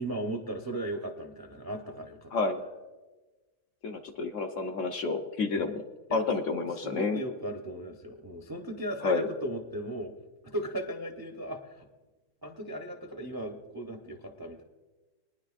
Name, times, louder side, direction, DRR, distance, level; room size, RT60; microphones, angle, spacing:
voice 1, 0.0-2.3 5.6-5.7 6.1-6.4 6.7-10.1 10.4-11.9 12.4-14.6, right 1 dB, 25° right, 3 dB, 0.5 m, -37 dB
voice 2, 3.8-5.8 6.1-7.2 9.0-9.3, left 4 dB, 60° left, 5 dB, 1.0 m, -29 dB
22.0 x 10.0 x 2.5 m, 1.2 s
omnidirectional pair, 1.7 m